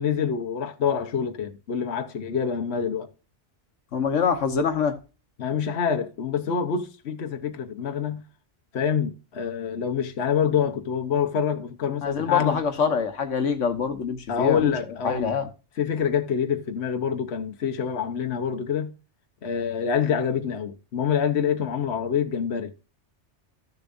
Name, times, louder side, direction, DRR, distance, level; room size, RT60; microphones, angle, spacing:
voice 1, 0.0-3.1 5.4-8.2 8.7-12.6 14.3-15.4 15.8-18.9 19.4-22.7, left 7 dB, 65° left, 1.2 m, -26 dB
voice 2, 3.9-5.0 12.0-14.7 15.0-15.5, left 6 dB, 85° left, 1.5 m, -25 dB
14.5 x 6.9 x 2.6 m
omnidirectional pair, 1.2 m